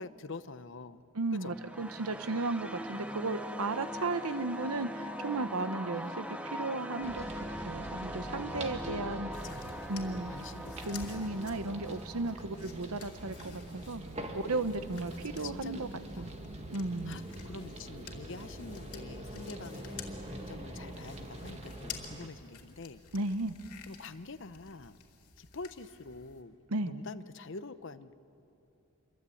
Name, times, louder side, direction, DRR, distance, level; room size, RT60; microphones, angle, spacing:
voice 1, 0.0-1.0 1.3-1.6 5.9-6.0 8.2-9.8 10.3-11.4 15.1-15.9 16.1-16.4 17.1-23.0 23.9-25.0 25.4-26.5 26.8-28.1, left 3 dB, 55° left, 12 dB, 0.8 m, -46 dB
voice 2, 1.1-7.2 7.6-9.3 9.9-10.3 10.9-14.0 14.3-15.9 16.2-16.3 16.7-17.3 23.1-23.6 26.7-26.9, right 2 dB, 80° right, 11 dB, 1.0 m, -35 dB
sound 1, 1.3-12.4, equal, 5° right, 0.9 m, -41 dB
sound 2, 7.0-22.3, right 1 dB, 30° right, 1.9 m, -44 dB
sound 3, 9.3-26.4, left 6 dB, 90° left, 2.8 m, -52 dB
28.0 x 23.5 x 8.6 m, 2.8 s
head